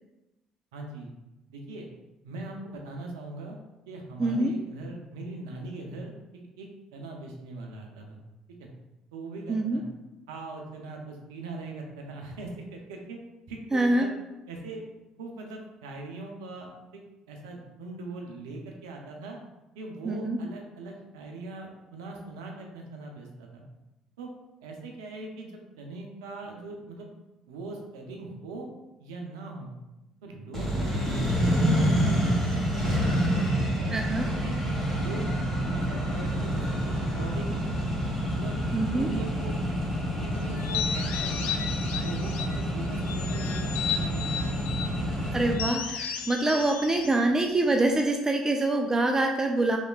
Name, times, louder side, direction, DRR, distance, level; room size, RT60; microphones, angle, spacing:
voice 1, 0.7-1.1 1.5-1.9 2.2-3.6 3.9-8.2 8.6-8.7 9.1-9.8 10.3-13.2 13.5-14.1 14.5-14.8 15.2-17.0 17.3-19.4 19.8-23.6 24.2-24.3 24.6-27.1 27.5-28.7 29.0-29.7 30.2-34.5 35.0-35.3 35.6-37.6 38.3-38.6 38.9-39.5 40.2-41.6 42.0-44.9, right 2 dB, 80° right, 1 dB, 0.5 m, -41 dB
voice 2, 4.2-4.5 9.5-9.8 13.7-14.1 20.0-20.4 33.9-34.3 38.7-39.1 45.3-49.8, right 2 dB, 20° right, 3 dB, 0.3 m, -25 dB
Accelerating revving vroom, 30.5-45.5, equal, 15° left, 1.3 m, -28 dB
sound 1, 40.5-42.6 43.0-44.9 45.5-48.0, left 8 dB, 65° left, 0.3 m, -34 dB
3.2 x 2.8 x 2.3 m, 0.99 s
hypercardioid pair, 50°, 2 cm